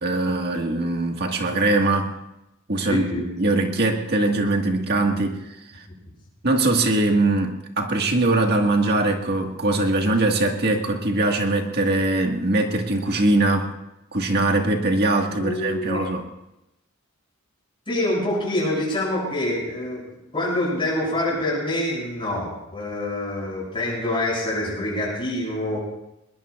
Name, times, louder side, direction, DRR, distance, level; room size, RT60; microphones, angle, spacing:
voice 1, 0.0-2.1 2.7-3.0 3.4-5.4 5.7-5.8 6.4-13.7 14.1-16.2, right 2 dB, 50° right, 3 dB, 1.8 m, -21 dB
voice 2, 2.8-3.3 5.1-5.2 15.3-16.0 17.9-20.0 20.3-25.8, left 1 dB, 25° left, -4 dB, 7.7 m, -26 dB
21.0 x 21.0 x 2.5 m, 0.90 s
head